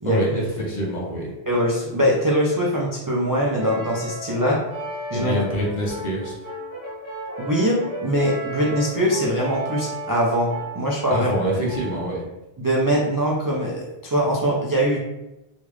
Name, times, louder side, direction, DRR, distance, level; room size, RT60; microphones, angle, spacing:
voice 1, 0.0-1.3 5.1-6.4 11.1-12.2, equal, 50° left, -3 dB, 0.8 m, -25 dB
voice 2, 1.5-4.6 5.1-5.4 7.4-11.3 12.6-15.0, equal, 35° right, -5 dB, 0.3 m, -22 dB
Brass instrument, 3.6-12.1, right 1 dB, 85° left, 1.5 m, -34 dB
3.1 x 2.4 x 3.1 m, 0.94 s
omnidirectional pair, 1.0 m